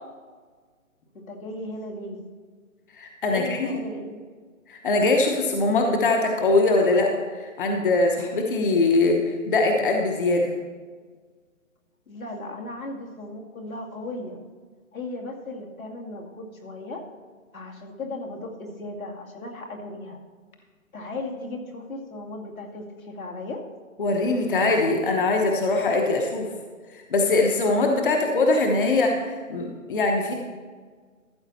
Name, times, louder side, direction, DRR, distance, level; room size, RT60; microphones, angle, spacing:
voice 1, 1.1-2.2 3.3-4.2 12.1-14.4 14.9-17.0 17.5-20.2 20.9-23.6 28.1-28.2, left 2 dB, 85° left, 0 dB, 2.5 m, -36 dB
voice 2, 2.9-3.8 4.7-10.5 24.0-26.5 26.9-30.3, left 2 dB, 40° left, 2 dB, 1.0 m, -22 dB
13.5 x 7.4 x 4.1 m, 1.5 s
hypercardioid pair, 170°, 40 cm